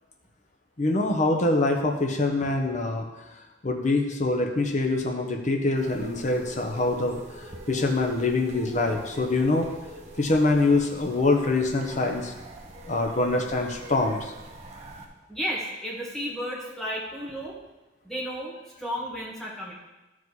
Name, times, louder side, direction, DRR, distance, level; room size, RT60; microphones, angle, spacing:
voice 1, 0.8-3.1 3.6-7.2 7.7-9.7 10.2-12.3 12.9-14.3, left 2 dB, 40° left, 2 dB, 0.9 m, -24 dB
sound 1, 5.7-15.1, right 1 dB, 35° right, 1.1 m, -44 dB
voice 2, 15.3-17.6 18.0-19.7, equal, ahead, -5 dB, 1.9 m, -33 dB
12.5 x 5.0 x 4.0 m, 1.0 s
head